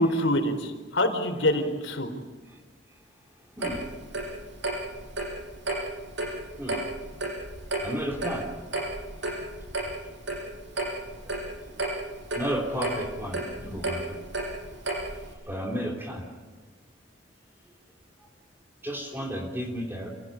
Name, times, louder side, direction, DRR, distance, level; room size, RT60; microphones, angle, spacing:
voice 1, 0.0-2.1, left 1 dB, 75° left, 5 dB, 4.4 m, -25 dB
voice 2, 3.4-3.9 4.5-4.7 6.6-6.8 7.5-8.8 10.6-10.9 11.1-14.2 15.1-16.3 18.2-18.3 18.8-20.1, equal, 10° right, 0 dB, 3.5 m, -35 dB
Clock, 3.6-15.3, right 2 dB, 70° right, 7.5 m, -33 dB
28.5 x 18.0 x 8.9 m, 1.3 s
head